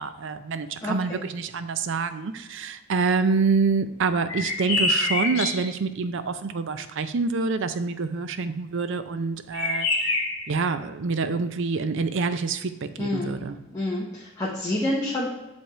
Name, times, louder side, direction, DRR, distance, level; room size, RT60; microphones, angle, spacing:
voice 1, 0.0-9.9 10.5-13.6, right 4 dB, 60° right, 11 dB, 0.5 m, -26 dB
voice 2, 0.8-1.2 13.0-13.3 13.7-15.3, left 1 dB, 15° left, -6 dB, 1.0 m, -28 dB
sound 1, 4.3-5.7 9.5-10.5, left 2 dB, 70° left, 1.8 m, -25 dB
7.9 x 3.5 x 4.3 m, 1.0 s
head